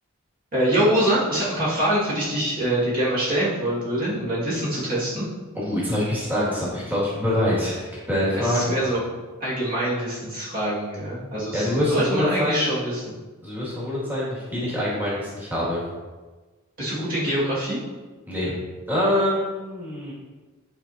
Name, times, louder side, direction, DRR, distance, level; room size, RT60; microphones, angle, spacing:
voice 1, 0.5-5.3 8.3-9.0 9.4-13.1 16.8-17.8, right 1 dB, 45° right, -8 dB, 2.3 m, -24 dB
voice 2, 5.5-8.7 11.5-12.7 13.4-15.8 18.3-18.6 18.9-20.1, left 1 dB, 10° right, -8 dB, 2.4 m, -25 dB
11.0 x 5.0 x 2.9 m, 1.3 s
head